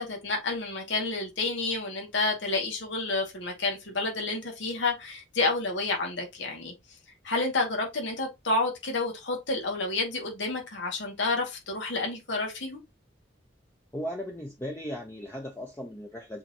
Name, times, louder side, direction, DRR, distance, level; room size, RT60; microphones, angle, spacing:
voice 1, 0.0-6.7 7.2-12.8, left 3 dB, 75° left, 2.5 m, -30 dB
voice 2, 13.9-16.4, equal, 10° left, 1.0 m, -37 dB
7.6 x 4.4 x 3.1 m
head